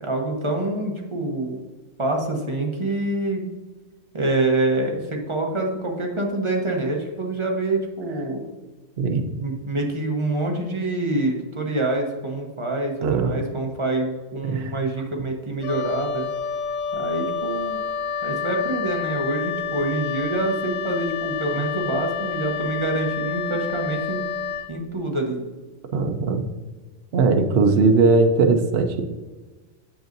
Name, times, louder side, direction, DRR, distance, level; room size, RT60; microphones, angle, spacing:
voice 1, 0.0-1.6 2.0-3.4 4.1-8.5 9.1-16.3 16.9-17.8 18.2-24.3 24.7-25.4, right 2 dB, 25° right, 1 dB, 0.9 m, -26 dB
voice 2, 13.0-13.4 14.4-14.7 25.9-26.4 27.1-29.0, right 4 dB, 55° right, 5 dB, 0.8 m, -19 dB
Wind instrument woodwind instrument, 15.6-24.7, left 7 dB, 75° left, 1.1 m, -29 dB
7.9 x 7.1 x 2.6 m, 1.3 s
omnidirectional pair, 1.4 m